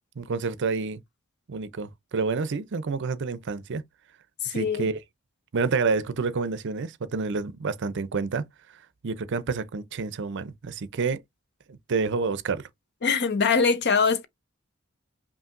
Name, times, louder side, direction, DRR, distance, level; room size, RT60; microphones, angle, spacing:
voice 1, 0.2-1.0 1.5-3.8 4.5-5.0 5.5-8.4 9.0-11.2 11.7-12.7, right 4 dB, 60° right, 0.5 m, -28 dB
voice 2, 4.4-4.9 13.0-14.3, left 5 dB, 55° left, 0.7 m, -23 dB
5.5 x 2.6 x 2.5 m
head